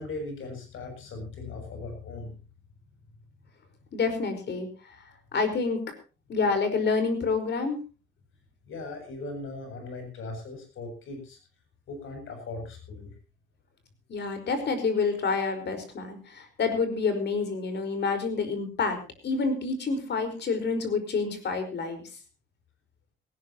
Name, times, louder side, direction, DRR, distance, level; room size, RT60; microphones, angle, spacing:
voice 1, 0.0-2.4 8.7-11.4 11.9-13.1, left 2 dB, 80° left, 5 dB, 7.9 m, -38 dB
voice 2, 3.9-4.7 5.3-5.8 6.3-7.8 14.1-19.0 19.2-22.1, left 4 dB, 60° left, 8 dB, 5.0 m, -28 dB
18.5 x 18.5 x 3.0 m, 0.33 s
cardioid pair, 125°, 20 cm